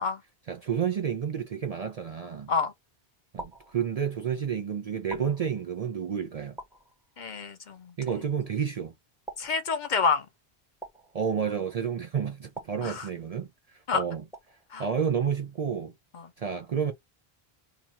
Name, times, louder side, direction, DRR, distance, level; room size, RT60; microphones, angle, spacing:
voice 1, 0.5-2.5 3.3-6.6 8.0-8.9 11.1-13.5 13.9-14.2 14.8-15.9 16.4-16.9, right 7 dB, 50° right, 0.5 m, -30 dB
sound 1, 3.4-4.3 5.1-6.0 6.6-7.4 8.1-8.7 9.3-10.2 10.8-11.7 12.5-13.5 14.3-14.9, right 2 dB, 5° right, 0.8 m, -47 dB
voice 2, 7.2-7.9 9.4-10.3 12.8-13.1 13.9-14.0 14.7-14.8 16.1-16.3, left 5 dB, 55° left, 0.7 m, -28 dB
2.9 x 2.3 x 4.0 m
omnidirectional pair, 1.0 m